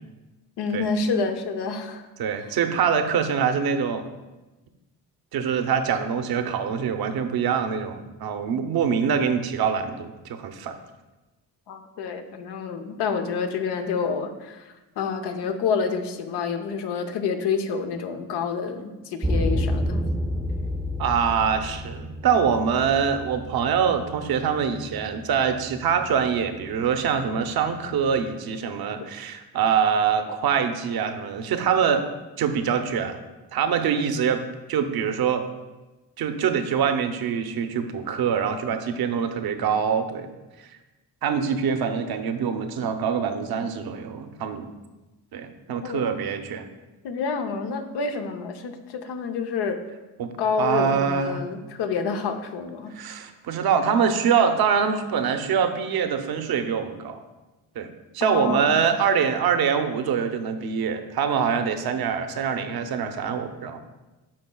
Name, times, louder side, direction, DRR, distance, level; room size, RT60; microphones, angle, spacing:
voice 1, 0.6-2.1 11.7-20.0 45.8-46.1 47.0-49.8 50.4-53.0 58.2-58.7, left 5 dB, 75° left, 6 dB, 0.8 m, -28 dB
voice 2, 2.2-4.0 5.3-10.8 21.0-32.1 32.4-33.2 33.5-34.4 34.7-35.4 36.2-40.3 40.6-40.7 41.2-44.7 45.3-46.7 50.2-50.3 50.6-51.4 53.0-57.2 57.8-63.8, right 7 dB, 65° right, 7 dB, 0.8 m, -24 dB
sound 1, 19.2-28.3, left 1 dB, 5° right, 0.6 m, -31 dB
12.0 x 4.1 x 2.3 m, 1.1 s
cardioid pair, 75°, 41 cm